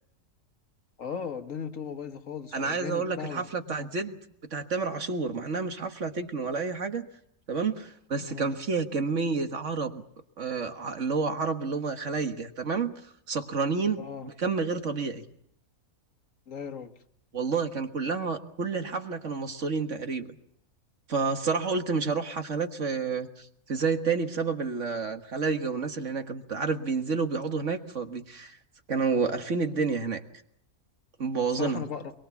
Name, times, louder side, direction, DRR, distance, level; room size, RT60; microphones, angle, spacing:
voice 1, 1.0-3.9 8.2-8.5 14.0-14.3 16.5-16.9 31.5-32.1, left 7 dB, 60° left, 7 dB, 1.7 m, -37 dB
voice 2, 2.5-4.2 4.5-7.1 7.5-10.0 10.4-13.0 13.3-15.2 17.3-20.4 21.1-28.6 28.9-30.2 31.2-31.9, right 4 dB, 55° right, 6 dB, 1.8 m, -29 dB
23.0 x 23.0 x 7.1 m, 0.71 s
omnidirectional pair, 1.6 m